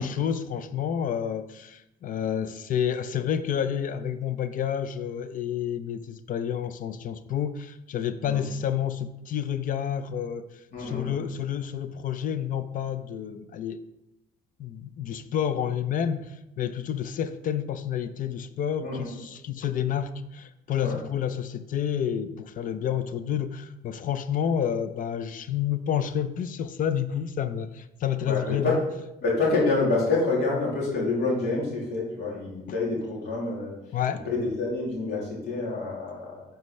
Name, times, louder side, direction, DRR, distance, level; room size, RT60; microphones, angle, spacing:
voice 1, 0.0-13.8 14.6-28.8 33.9-34.2, left 9 dB, 55° left, 11 dB, 0.6 m, -29 dB
voice 2, 10.7-11.2 18.8-19.1 20.8-21.0 28.2-28.8 29.2-33.8 34.3-36.4, left 3 dB, 70° left, -4 dB, 2.8 m, -27 dB
9.6 x 4.6 x 3.2 m, 0.90 s
cardioid pair, 110°, 17 cm